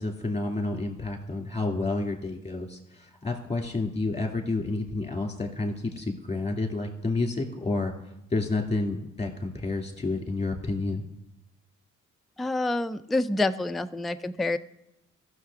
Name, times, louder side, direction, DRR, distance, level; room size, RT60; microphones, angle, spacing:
voice 1, 0.0-7.9 8.3-11.0, left 2 dB, 20° left, 2 dB, 2.4 m, -30 dB
voice 2, 12.4-14.6, left 2 dB, ahead, 9 dB, 0.3 m, -27 dB
15.5 x 6.5 x 3.4 m, 0.85 s
cardioid pair, 70°, 30 cm